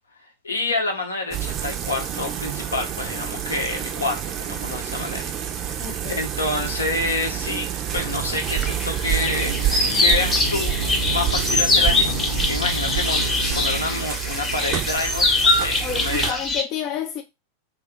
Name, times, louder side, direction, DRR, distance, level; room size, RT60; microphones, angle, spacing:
voice 1, 0.4-5.3 5.6-7.7 7.9-10.8 11.1-16.4, left 2 dB, 75° left, 0.8 m, -28 dB
sound 1, 1.3-16.3, right 9 dB, 30° right, 0.5 m, -28 dB
voice 2, 5.8-6.3 15.8-17.2, left 9 dB, 40° left, 0.4 m, -30 dB
sound 2, 8.3-16.6, left 3 dB, 20° left, 0.8 m, -23 dB
sound 3, 9.0-14.0, left 4 dB, 90° right, 0.4 m, -33 dB
3.0 x 2.4 x 3.6 m
figure-of-eight pair, 90°, 0 cm